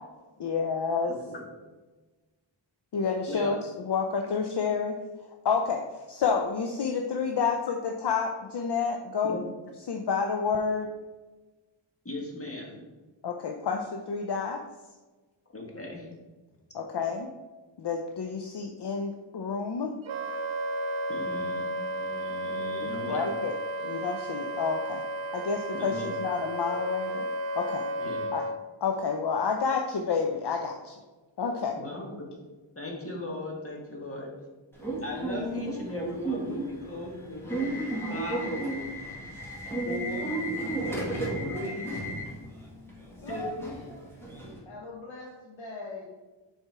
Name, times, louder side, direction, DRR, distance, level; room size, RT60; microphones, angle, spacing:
voice 1, 0.4-1.1 2.9-5.0 5.4-9.4 9.9-10.9 13.2-14.6 16.7-17.3 17.8-19.9 23.1-25.0 25.3-27.3 27.5-27.9 28.3-28.4 28.8-31.0 31.4-31.8, left 5 dB, 60° left, 3 dB, 0.6 m, -29 dB
voice 2, 12.0-12.8 15.5-16.1 21.1-23.2 25.7-26.1 28.0-28.3 31.8-32.3 32.7-34.3 35.0-38.6 39.8-40.3 41.4-41.9 43.3-43.7, left 2 dB, 30° left, -1 dB, 1.6 m, -38 dB
Wind instrument woodwind instrument, 20.1-28.6, right 1 dB, 80° right, 0.6 m, -33 dB
Subway metro underground / Alarm, 34.8-44.6, right 1 dB, 5° left, 1.9 m, -33 dB
voice 3, 43.2-44.1 44.6-46.1, left 1 dB, 75° left, -3 dB, 1.1 m, -40 dB
6.8 x 4.3 x 4.6 m, 1.2 s
wide cardioid pair, 110°, 46 cm